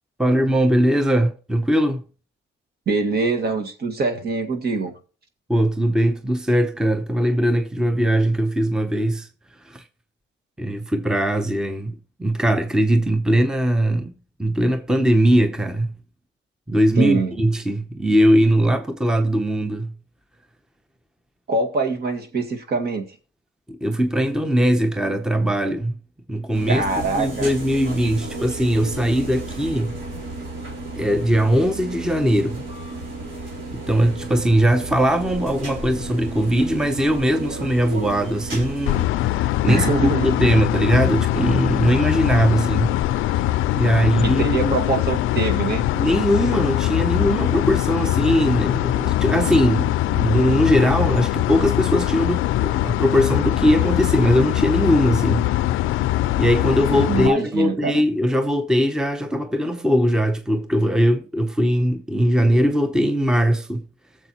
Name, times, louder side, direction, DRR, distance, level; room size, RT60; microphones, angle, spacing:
voice 1, 0.2-2.0 5.5-9.3 9.6-9.8 10.6-14.1 14.4-15.9 16.7-19.9 23.7-25.9 26.3-26.8 27.1-29.9 31.0-32.6 33.7-42.9 43.2-43.4 43.7-44.7 45.9-55.8 56.4-63.9, equal, 5° right, 0.8 m, -20 dB
voice 2, 2.9-4.9 17.0-17.4 21.5-23.1 26.7-27.5 39.7-40.5 44.2-45.9 57.1-58.0, right 3 dB, 55° right, 1.9 m, -24 dB
sound 1, 26.5-39.0, right 2 dB, 75° right, 4.6 m, -33 dB
sound 2, 38.9-57.3, left 15 dB, 80° left, 0.4 m, -22 dB
19.0 x 7.2 x 3.0 m
cardioid pair, 90°, 20 cm